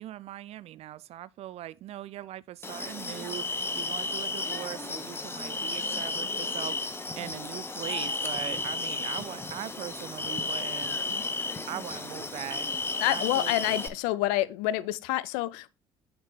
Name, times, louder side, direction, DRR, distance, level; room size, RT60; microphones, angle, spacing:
voice 1, 0.0-12.7 13.1-13.6, right 13 dB, 50° right, 0.4 m, -40 dB
sound 1, 2.6-13.9, left 3 dB, 15° left, 1.0 m, -33 dB
voice 2, 13.0-15.7, left 15 dB, 65° left, 0.5 m, -28 dB
6.4 x 6.0 x 3.2 m
hypercardioid pair, 60°, 14 cm